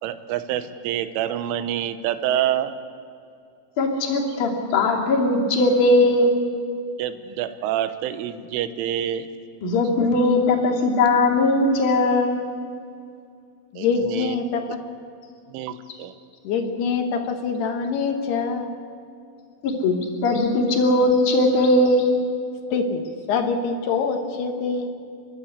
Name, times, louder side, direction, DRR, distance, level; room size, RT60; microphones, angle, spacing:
voice 1, 0.0-2.7 7.0-9.3 10.0-10.1 13.8-14.4 15.5-16.1, right 11 dB, 80° right, 10 dB, 3.3 m, -27 dB
voice 2, 3.8-6.3 9.6-12.5 19.6-22.1, left 2 dB, 45° left, -1 dB, 3.4 m, -19 dB
voice 3, 13.7-14.8 16.4-18.7 22.7-23.0 23.3-24.9, left 5 dB, 65° left, 5 dB, 2.9 m, -24 dB
30.0 x 11.5 x 8.2 m, 2.4 s
omnidirectional pair, 5.9 m